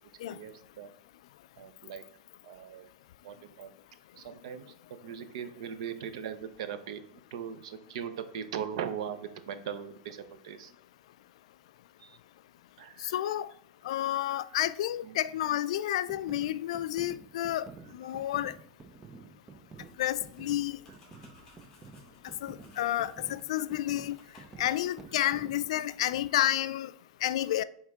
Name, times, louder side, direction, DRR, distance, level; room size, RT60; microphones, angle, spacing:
voice 1, 0.3-0.9 1.6-2.0 2.4-2.9 3.2-3.7 4.1-7.0 7.3-10.7 12.0-12.2 12.8-13.1 15.0-15.2 21.2-21.3, right 8 dB, 65° right, 0.7 m, -39 dB
voice 2, 13.0-13.5 13.8-17.7 17.9-18.5 20.0-20.8 22.4-24.2 24.6-26.9 27.2-27.6, left 13 dB, 70° left, 0.3 m, -30 dB
sound 1, 16.1-25.7, right 4 dB, 15° right, 0.4 m, -51 dB
sound 2, 19.7-24.8, left 3 dB, 15° left, 2.3 m, -61 dB
9.4 x 3.6 x 3.6 m
supercardioid pair, 170°, 3 cm